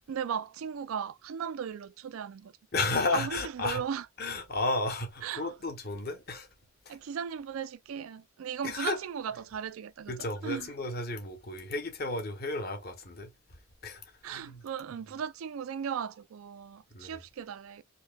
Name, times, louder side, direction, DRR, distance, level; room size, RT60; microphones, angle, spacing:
voice 1, 0.1-2.5 3.1-4.1 5.2-5.5 6.9-10.1 10.4-10.7 14.2-17.8, right 7 dB, 90° right, 0.4 m, -37 dB
voice 2, 2.7-3.8 4.2-6.5 6.9-7.0 8.6-9.0 10.1-13.3 13.8-14.6 16.9-17.2, left 3 dB, 50° left, 1.1 m, -33 dB
4.4 x 2.8 x 2.2 m
head